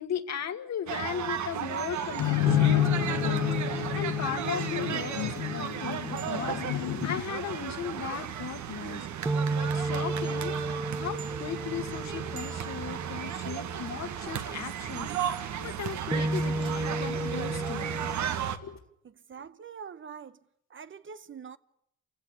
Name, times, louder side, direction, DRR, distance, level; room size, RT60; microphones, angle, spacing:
voice 1, 0.0-10.6 11.0-17.9 18.6-18.8, left 8 dB, 60° left, 2.0 m, -37 dB
sound 1, 0.9-18.6, right 9 dB, 70° right, 1.7 m, -35 dB
sound 2, 2.2-7.2, left 15 dB, 75° left, 1.0 m, -29 dB
sound 3, 2.5-6.6 9.2-13.5 16.1-18.2, right 2 dB, 10° right, 1.0 m, -33 dB
voice 2, 19.0-20.4 20.7-21.6, right 6 dB, 40° right, 0.9 m, -44 dB
27.5 x 16.5 x 8.5 m
cardioid pair, 90°, 30 cm